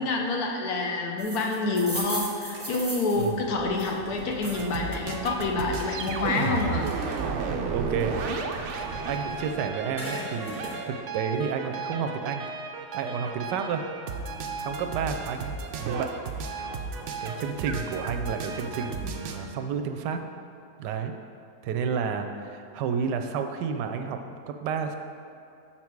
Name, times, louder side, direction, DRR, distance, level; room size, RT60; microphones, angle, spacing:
voice 1, 0.0-6.9, left 3 dB, 65° left, 1 dB, 1.2 m, -27 dB
sound 1, 1.2-4.7 5.1-7.5 7.9-9.5 9.7-10.8, right 1 dB, 10° right, 1.0 m, -38 dB
sound 2, 3.1-9.5, equal, 35° left, 1.8 m, -49 dB
voice 2, 3.2-3.5 6.2-6.5 7.2-8.4 9.0-12.4 12.9-13.9 14.6-16.1 17.2-20.2 20.8-21.1 21.6-25.0, right 6 dB, 90° right, 6 dB, 1.2 m, -31 dB
sound 3, 4.5-19.4, right 4 dB, 75° right, 0.6 m, -33 dB
6.1 x 5.7 x 4.6 m, 2.5 s
omnidirectional pair, 1.8 m